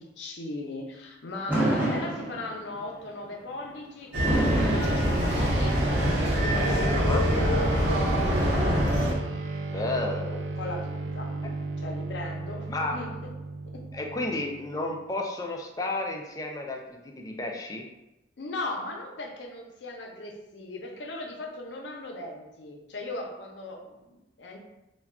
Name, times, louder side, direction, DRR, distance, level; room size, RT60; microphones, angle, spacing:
voice 1, 0.0-5.9 6.4-7.8 10.6-11.3 11.8-13.1 13.7-13.9 18.4-24.6, left 2 dB, 85° left, 0 dB, 0.5 m, -38 dB
Fireworks, 1.5-2.8 4.2-5.8, right 1 dB, 10° right, 0.7 m, -28 dB
sound 1, 4.1-9.1, equal, 90° right, 0.8 m, -24 dB
sound 2, 5.3-15.0, right 3 dB, 75° right, 0.3 m, -35 dB
voice 2, 7.0-7.3 9.7-10.5 11.4-11.5 12.7-13.1 13.9-17.8, left 2 dB, 20° left, 1 dB, 0.3 m, -32 dB
2.2 x 2.2 x 3.5 m, 0.95 s
head